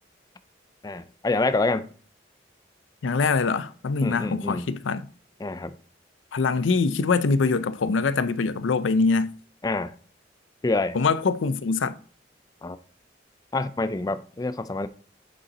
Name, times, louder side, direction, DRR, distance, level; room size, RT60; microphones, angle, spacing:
voice 1, 0.8-1.9 4.0-4.6 5.4-5.7 9.6-9.9 10.6-11.0 12.6-12.8 13.5-14.9, left 3 dB, 20° left, 0.3 m, -26 dB
voice 2, 3.0-5.1 6.3-9.3 10.9-12.0, left 4 dB, 90° left, 0.5 m, -23 dB
8.5 x 5.6 x 4.0 m
head